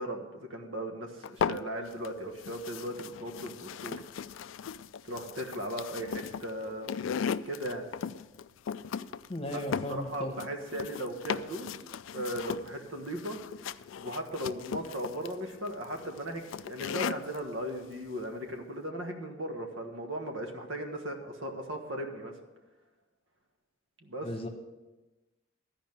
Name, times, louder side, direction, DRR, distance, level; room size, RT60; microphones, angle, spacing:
voice 1, 0.0-4.0 5.0-6.9 7.4-7.9 9.5-9.6 9.9-11.7 12.1-13.4 14.0-22.3 24.0-24.3, right 1 dB, 65° right, 3 dB, 1.5 m, -37 dB
sound 1, 1.2-2.1 2.4-17.4, left 7 dB, 65° left, 0.3 m, -37 dB
voice 2, 9.3-10.3 24.2-24.5, left 1 dB, 25° left, 4 dB, 1.1 m, -36 dB
13.0 x 5.1 x 9.0 m, 1.1 s
head